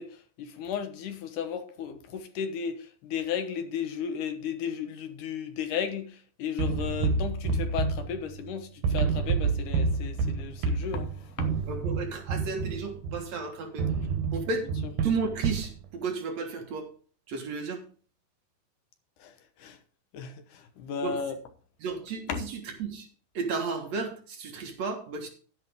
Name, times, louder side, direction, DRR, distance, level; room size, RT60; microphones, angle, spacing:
voice 1, 0.0-11.5 19.2-19.8 20.1-21.4 22.3-22.4, left 7 dB, 70° left, 2.5 m, -34 dB
sound 1, 6.6-8.5 8.8-13.3 13.8-15.7, right 4 dB, 85° right, 3.0 m, -29 dB
voice 2, 11.7-13.9 14.3-14.7 15.0-16.9 17.3-17.8 21.0-21.2 21.8-23.1 23.3-25.3, right 4 dB, 55° right, 2.4 m, -33 dB
10.5 x 10.0 x 3.6 m
omnidirectional pair, 4.0 m